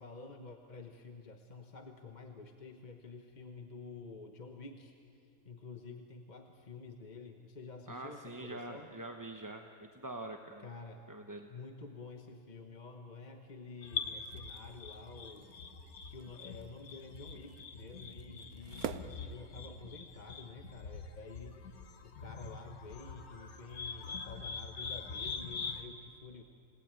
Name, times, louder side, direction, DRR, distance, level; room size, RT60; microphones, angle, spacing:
voice 1, 0.0-8.9 10.6-11.0 11.5-15.5 16.1-26.4, left 4 dB, 35° left, 4 dB, 1.2 m, -50 dB
voice 2, 7.9-9.7 9.9-10.7 11.1-11.5, right 2 dB, 15° right, 4 dB, 0.8 m, -44 dB
sound 1, 13.8-25.8, left 5 dB, 85° left, 1.9 m, -44 dB
sound 2, 14.1-20.1, right 8 dB, 90° right, 1.3 m, -49 dB
29.5 x 18.5 x 9.0 m, 2.5 s
omnidirectional pair, 1.5 m